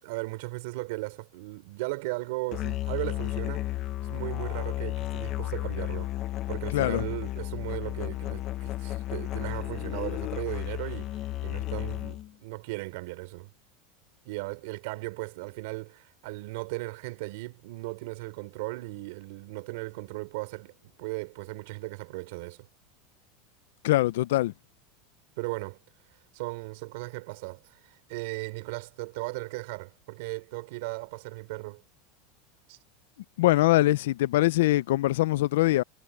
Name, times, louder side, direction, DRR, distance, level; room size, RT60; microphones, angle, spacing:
voice 1, 0.0-6.1 6.5-13.5 14.2-22.7 25.4-31.8 32.7-32.8, right 24 dB, 60° right, 4.4 m, -37 dB
Musical instrument, 2.5-12.3, left 15 dB, 30° left, 0.8 m, -33 dB
voice 2, 6.7-7.0 23.8-24.5 33.4-35.8, left 16 dB, 75° left, 0.5 m, -23 dB
supercardioid pair, 170°, 0 cm